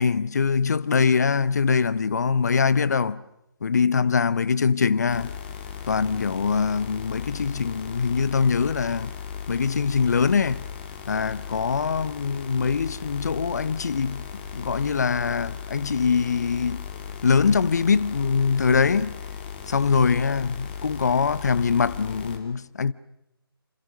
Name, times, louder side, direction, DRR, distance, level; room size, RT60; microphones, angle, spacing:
voice 1, 0.0-3.2 3.6-5.4 5.9-9.1 9.5-10.6 11.1-16.9 17.2-19.2 19.7-22.9, left 5 dB, 45° left, 0.8 m, -23 dB
sound 1, 5.1-22.4, left 7 dB, 25° left, 2.8 m, -37 dB
27.0 x 26.5 x 6.4 m
figure-of-eight pair, 150°, 13 cm